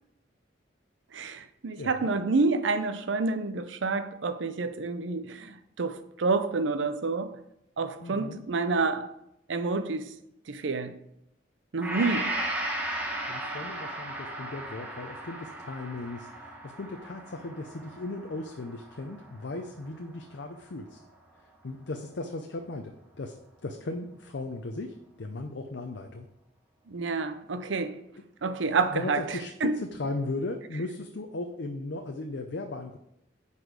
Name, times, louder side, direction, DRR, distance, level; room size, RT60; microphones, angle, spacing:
voice 1, 1.1-7.4 7.8-9.1 9.5-10.1 10.5-10.9 11.7-12.4 26.9-28.0 28.4-29.2 29.6-29.8, right 3 dB, 75° right, 0.6 m, -28 dB
voice 2, 1.8-2.1 8.0-8.4 11.8-12.0 13.3-21.0 21.6-23.4 23.6-26.3 27.0-27.2 28.8-33.0, left 2 dB, 65° left, 0.6 m, -37 dB
Gong, 11.8-19.8, right 1 dB, 10° right, 1.2 m, -36 dB
9.3 x 4.2 x 5.0 m
head